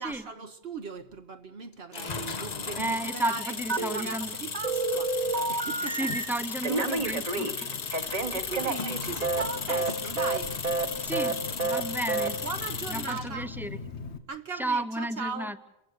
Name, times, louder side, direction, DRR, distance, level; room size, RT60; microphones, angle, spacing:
voice 1, 0.0-6.1 7.9-10.5 12.4-13.5 14.3-15.5, right 4 dB, 70° right, 1.3 m, -38 dB
sound 1, 1.9-13.2, left 5 dB, 40° left, 1.0 m, -36 dB
voice 2, 2.8-4.3 5.8-7.7 11.0-12.4 12.9-13.8 14.5-15.6, right 1 dB, ahead, 0.9 m, -33 dB
Telephone, 3.7-4.3 4.6-6.2 6.6-9.4 9.7-9.9 10.2-10.4 10.6-10.9 11.1-11.3 11.6-11.8 12.1-12.3, right 3 dB, 35° right, 1.2 m, -29 dB
Car / Engine, 7.0-14.2, left 5 dB, 90° left, 1.6 m, -43 dB
29.0 x 15.5 x 6.5 m
omnidirectional pair, 1.1 m